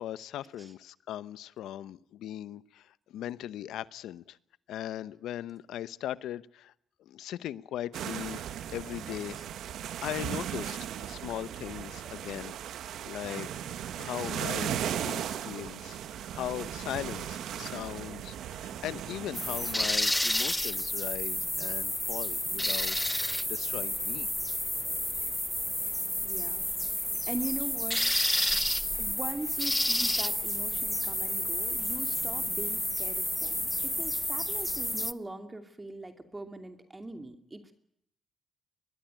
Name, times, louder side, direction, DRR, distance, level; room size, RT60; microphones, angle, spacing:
voice 1, 0.0-4.4 4.7-6.7 7.0-8.4 8.7-9.4 10.0-12.5 13.0-24.3, left 12 dB, 80° left, 17 dB, 0.9 m, -39 dB
sound 1, 7.9-19.9, right 10 dB, 75° right, 1.7 m, -37 dB
sound 2, 19.3-35.1, left 1 dB, 5° left, 0.9 m, -30 dB
voice 2, 26.2-26.6 27.3-28.1 29.0-37.7, right 2 dB, 20° right, 7 dB, 2.6 m, -41 dB
23.0 x 20.5 x 9.1 m, 0.75 s
cardioid pair, 90°, 0 cm